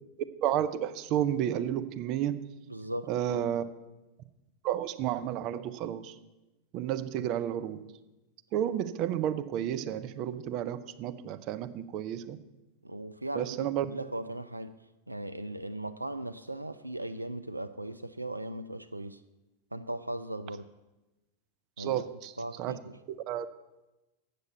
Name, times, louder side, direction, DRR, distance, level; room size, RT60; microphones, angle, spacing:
voice 1, 0.4-2.4 3.1-3.6 4.6-6.2 6.7-7.8 8.5-12.4 13.4-13.9 21.8-22.3 22.6-22.8 23.1-23.5, right 11 dB, 40° right, 10 dB, 0.6 m, -31 dB
voice 2, 2.7-3.6 7.2-7.3 12.8-14.7 15.1-19.2 19.7-20.7 21.8-22.0 22.4-23.0, right 1 dB, 85° right, 12 dB, 0.3 m, -38 dB
8.4 x 6.6 x 8.1 m, 1.0 s
figure-of-eight pair, 90°, 0 cm